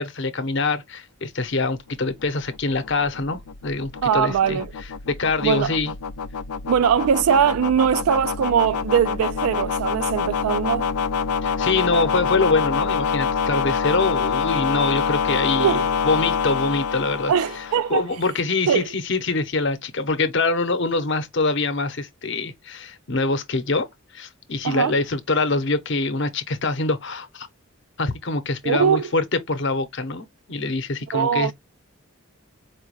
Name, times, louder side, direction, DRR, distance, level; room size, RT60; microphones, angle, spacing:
voice 1, 0.0-4.6 5.1-5.9 11.4-23.9 24.1-27.5 28.0-31.5, left 3 dB, 55° left, 0.8 m, -24 dB
sound 1, 1.9-18.1, left 6 dB, 90° left, 0.4 m, -26 dB
voice 2, 4.0-4.6 5.4-5.7 6.7-10.9 15.6-15.8 17.3-18.0 18.7-18.9 24.6-25.0 28.6-29.0 31.1-31.5, right 8 dB, 85° right, 0.3 m, -21 dB
4.7 x 2.2 x 3.1 m
head